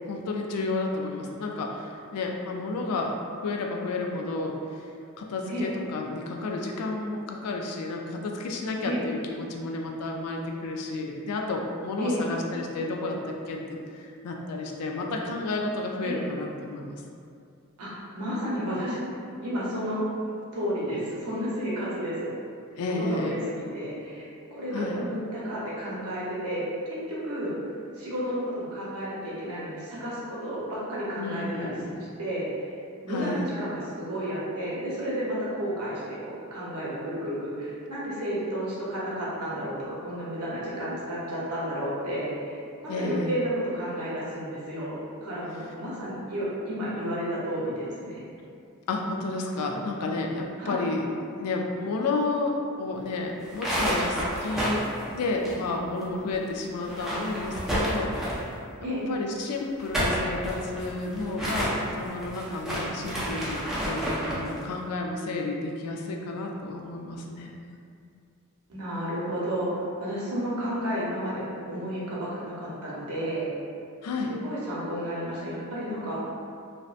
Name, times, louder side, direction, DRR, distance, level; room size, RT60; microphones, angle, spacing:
voice 1, 0.1-4.9 5.2-17.0 22.8-23.4 24.7-25.0 31.2-32.0 33.1-33.4 42.9-43.3 48.9-51.0 51.4-54.8 55.1-58.6 59.1-67.5 74.0-74.3, left 2 dB, 90° left, 1 dB, 0.3 m, -31 dB
voice 2, 17.8-19.0 19.4-20.0 20.5-22.3 22.8-26.6 26.9-27.6 27.9-31.7 32.2-32.7 33.0-48.2 50.6-50.9 58.8-59.0 68.7-71.4 71.7-73.5 74.3-76.2, equal, 90° right, -7 dB, 0.8 m, -32 dB
sound 1, 53.4-56.0 56.3-56.4 56.8-58.5 59.6-64.5, equal, ahead, 0.3 m, -30 dB
2.6 x 2.1 x 2.4 m, 2.4 s
head